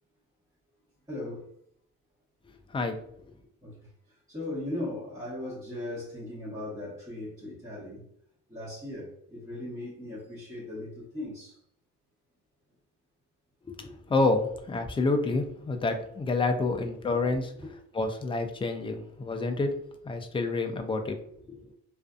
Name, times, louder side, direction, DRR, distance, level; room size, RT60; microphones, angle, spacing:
voice 1, 1.1-1.4 3.6-3.7 4.3-8.0 8.5-11.5, left 1 dB, 10° right, 1.1 m, -38 dB
voice 2, 13.6-17.5 17.9-19.7 20.0-21.2 21.5-21.7, left 3 dB, 20° left, 0.4 m, -28 dB
2.5 x 2.4 x 2.3 m
cardioid pair, 90°, 30 cm